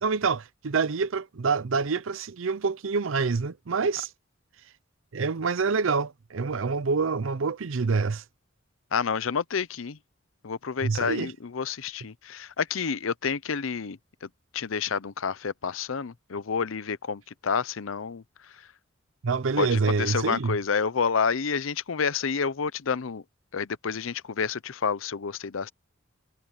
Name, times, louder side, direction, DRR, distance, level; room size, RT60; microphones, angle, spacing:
voice 1, 0.0-4.1 5.1-8.2 10.8-11.3 19.2-20.6, right 4 dB, 75° right, 0.6 m, -26 dB
voice 2, 8.9-10.0 10.4-14.3 14.5-18.2 19.6-23.2 23.5-25.7, left 6 dB, 80° left, 0.7 m, -29 dB
head